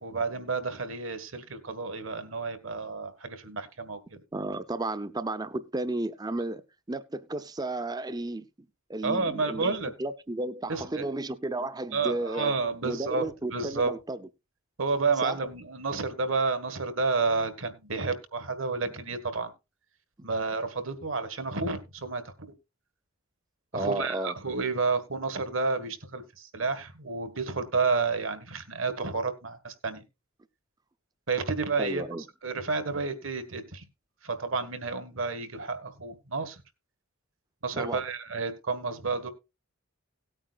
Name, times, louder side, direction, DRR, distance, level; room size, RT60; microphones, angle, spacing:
voice 1, 0.0-4.2 9.0-9.9 10.7-11.0 11.9-13.9 14.8-19.5 20.2-22.3 23.7-30.0 31.3-32.0 32.4-33.8 34.2-36.6 37.6-39.3, right 4 dB, 65° right, 1.7 m, -30 dB
voice 2, 4.3-6.6 6.9-8.5 8.9-12.5 12.8-14.2 15.2-15.4 23.7-24.3 31.8-32.2 37.8-38.0, right 2 dB, 20° right, 0.6 m, -33 dB
18.0 x 8.9 x 2.4 m
head